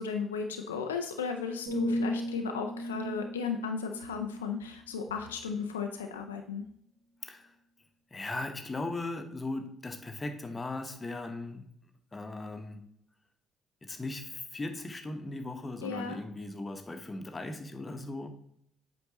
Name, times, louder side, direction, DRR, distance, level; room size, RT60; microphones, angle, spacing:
voice 1, 0.0-6.6 15.8-16.2, left 5 dB, 80° left, 4 dB, 0.4 m, -35 dB
sound 1, 1.7-5.6 6.1-6.3, equal, 50° right, 2.8 m, -36 dB
voice 2, 7.2-7.5 8.1-11.7 12.1-12.9 13.8-18.3, left 2 dB, 25° left, 6 dB, 0.9 m, -38 dB
7.9 x 5.2 x 2.9 m, 0.71 s
figure-of-eight pair, 45°, 0 cm